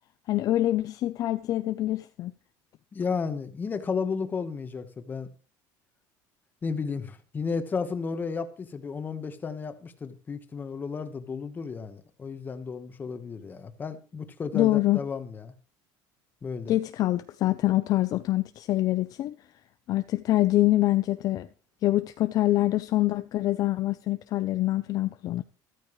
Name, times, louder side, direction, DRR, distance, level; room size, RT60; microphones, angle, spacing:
voice 1, 0.3-2.3 14.5-15.0 16.7-19.4 19.9-21.5 21.8-25.4, left 15 dB, 45° left, 0.6 m, -25 dB
voice 2, 2.9-5.3 6.6-15.5 16.4-16.7, left 5 dB, 20° left, 1.3 m, -33 dB
14.0 x 13.0 x 3.2 m
cardioid pair, 150°, 9 cm